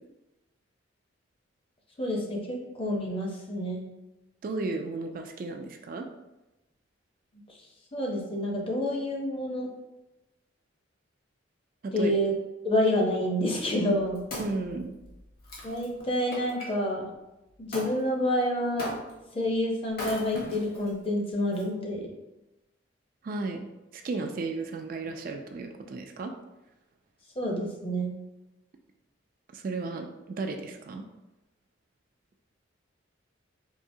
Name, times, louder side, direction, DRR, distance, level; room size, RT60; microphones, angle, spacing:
voice 1, 2.0-3.9 7.5-7.6 7.9-9.7 11.9-12.3 12.6-14.3 15.6-17.0 17.6-19.0 19.3-22.1 27.4-28.2, left 1 dB, 30° left, 0 dB, 0.6 m, -28 dB
voice 2, 4.4-6.1 11.8-12.1 14.4-14.9 23.2-23.7 23.9-26.3 29.5-31.1, right 3 dB, 45° right, 5 dB, 0.3 m, -34 dB
Wood, 13.8-16.7 17.7-17.9 18.8-19.3 19.9-20.9 21.5-21.6, left 1 dB, 50° left, 1.0 m, -38 dB
4.7 x 2.7 x 2.6 m, 1.0 s
head